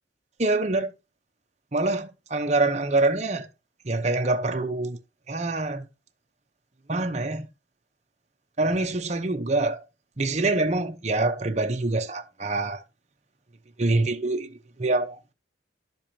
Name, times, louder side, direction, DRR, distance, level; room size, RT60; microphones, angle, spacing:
voice 1, 0.4-0.9 1.7-3.5 3.8-5.0 5.3-5.9 6.9-7.5 8.6-9.8 10.2-12.8 13.8-15.2, right 2 dB, 35° right, 0.9 m, -25 dB
11.5 x 6.9 x 2.9 m
head